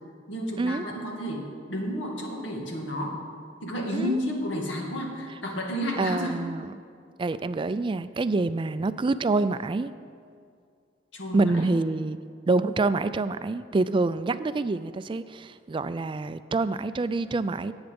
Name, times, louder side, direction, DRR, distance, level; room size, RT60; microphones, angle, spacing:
voice 1, 0.3-3.2 3.6-6.4 6.6-6.7 11.1-11.7, equal, 85° left, 0 dB, 2.2 m, -31 dB
voice 2, 6.0-6.7 7.2-9.9 11.3-12.2 12.5-17.7, right 3 dB, 25° right, 13 dB, 0.3 m, -26 dB
18.0 x 8.1 x 5.3 m, 2.3 s
head